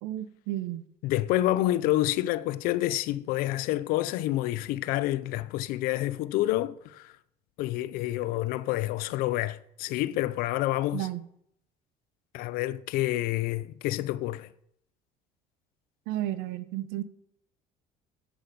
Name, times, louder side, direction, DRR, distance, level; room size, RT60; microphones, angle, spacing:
voice 1, 0.0-0.8 10.9-11.2 16.1-17.0, right 14 dB, 85° right, 0.8 m, -32 dB
voice 2, 1.0-7.1 7.6-11.1 12.3-14.5, left 15 dB, 70° left, 0.6 m, -28 dB
10.0 x 8.1 x 5.3 m
cardioid pair, 125°, 15 cm